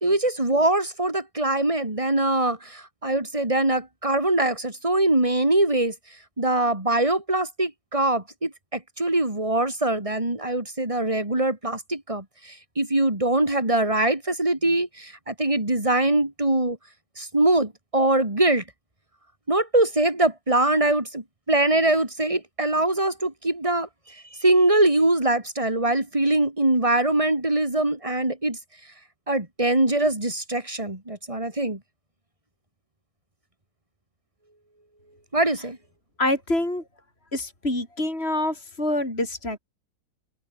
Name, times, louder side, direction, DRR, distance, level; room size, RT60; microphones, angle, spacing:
voice 1, 0.0-5.9 6.4-16.8 17.2-18.6 19.5-23.9 24.4-28.6 29.3-31.8 35.3-35.8, right 2 dB, 15° right, 3.7 m, -23 dB
voice 2, 36.2-36.8 37.3-39.6, left 1 dB, 30° left, 7.7 m, -26 dB
open air
omnidirectional pair, 2.0 m